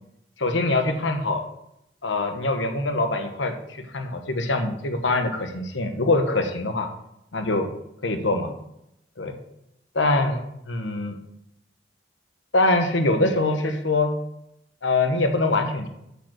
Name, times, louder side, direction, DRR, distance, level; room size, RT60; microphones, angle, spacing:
voice 1, 0.4-1.4 2.0-6.9 7.3-7.6 8.0-8.5 9.2-9.4 9.9-10.4 10.7-11.2 12.5-14.1 14.8-15.9, left 2 dB, 85° left, 6 dB, 1.2 m, -23 dB
8.9 x 5.2 x 6.3 m, 0.82 s
head